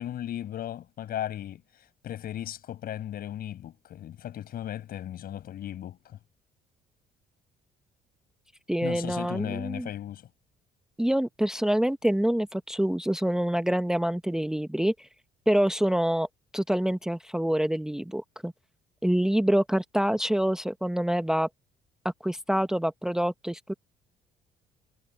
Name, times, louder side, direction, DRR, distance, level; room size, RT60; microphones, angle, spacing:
voice 1, 0.0-6.2 8.8-10.3, left 11 dB, 60° left, 7.0 m, -36 dB
voice 2, 8.7-9.9 11.0-15.1 15.5-16.3 16.5-18.5 19.0-21.5 22.2-23.7, right 1 dB, 5° right, 0.9 m, -26 dB
cardioid pair, 110°, 17 cm